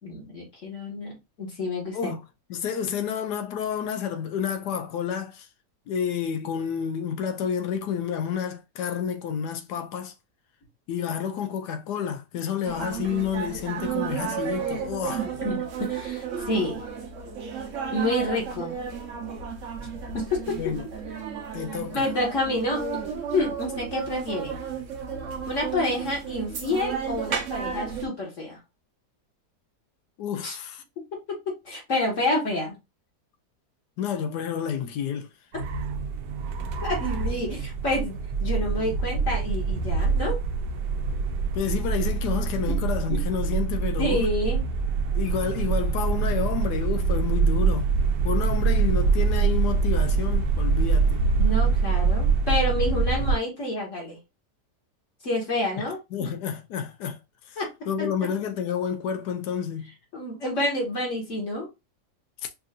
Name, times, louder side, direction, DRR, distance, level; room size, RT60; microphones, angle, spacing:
voice 1, 0.0-2.2 15.4-16.8 17.9-18.7 20.1-20.6 21.9-22.8 23.3-24.6 25.5-28.6 30.4-30.6 31.1-32.8 36.8-40.4 42.7-42.8 44.0-44.6 51.4-54.2 55.2-56.3 57.6-57.7 58.0-58.1 60.1-61.7, left 1 dB, 50° left, 1.8 m, -28 dB
voice 2, 1.9-2.2 2.5-5.5 5.9-10.1 10.9-15.3 20.6-20.9 21.5-22.1 30.2-30.8 34.0-35.3 38.6-39.0 41.5-44.3 45.1-47.9 48.2-51.3 55.8-55.9 56.1-57.2 57.5-57.6 57.9-59.9, left 8 dB, 75° left, 1.2 m, -30 dB
sound 1, 12.7-28.1, right 7 dB, 55° right, 1.1 m, -33 dB
sound 2, 35.5-53.4, right 5 dB, 90° right, 1.2 m, -24 dB
5.4 x 2.7 x 2.4 m
omnidirectional pair, 1.8 m